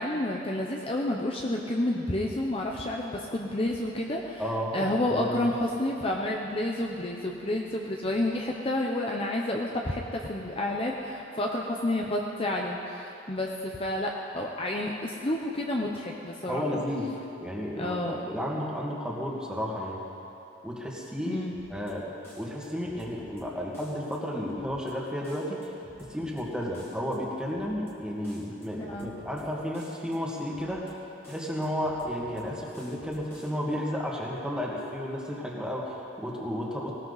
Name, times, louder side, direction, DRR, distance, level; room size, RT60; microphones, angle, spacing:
voice 1, 0.0-4.4 4.7-16.7 17.8-18.2 21.3-21.6 28.9-29.1, left 1 dB, 30° left, 0 dB, 0.9 m, -30 dB
voice 2, 4.4-4.7 5.1-5.5 16.5-20.0 20.6-21.4 21.7-25.7 26.0-30.9 31.3-36.9, equal, 5° right, -3 dB, 2.1 m, -33 dB
sound 1, 21.5-21.9 22.2-23.4 23.7-24.2 24.5-24.9 25.2-26.4 26.7-27.2 27.5-27.9 28.2-29.4 29.7-30.2 30.5-30.9 31.2-32.4 32.7-33.5, equal, 15° left, 2.1 m, -53 dB
19.0 x 18.5 x 4.1 m, 2.9 s
head